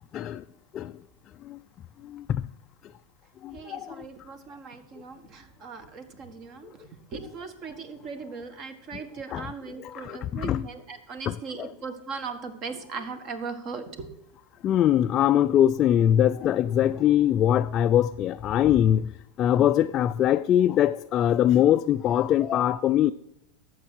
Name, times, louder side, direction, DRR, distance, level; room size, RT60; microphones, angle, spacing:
voice 1, 0.1-0.4 0.7-0.9 1.4-1.6 2.0-2.5 3.4-4.1 8.9-9.0 9.3-9.5 9.8-10.7 11.3-11.7 14.6-19.1 19.4-23.1, left 11 dB, 35° left, 0.3 m, -22 dB
voice 2, 3.5-14.1, right 5 dB, 40° right, 1.5 m, -39 dB
12.0 x 7.9 x 4.5 m
supercardioid pair, 125°, 0 cm